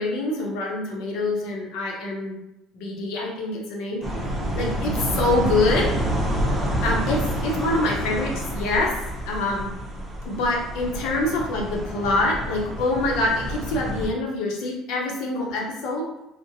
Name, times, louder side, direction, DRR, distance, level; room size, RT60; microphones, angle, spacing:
voice 1, 0.0-2.4 2.7-4.0 4.5-5.9 6.8-8.9 9.3-9.7 10.2-16.1, left 2 dB, 75° left, -1 dB, 0.7 m, -25 dB
sound 1, 4.0-14.1, right 1 dB, 25° right, 0.7 m, -28 dB
2.5 x 2.1 x 2.6 m, 0.88 s
supercardioid pair, 85°, 0 cm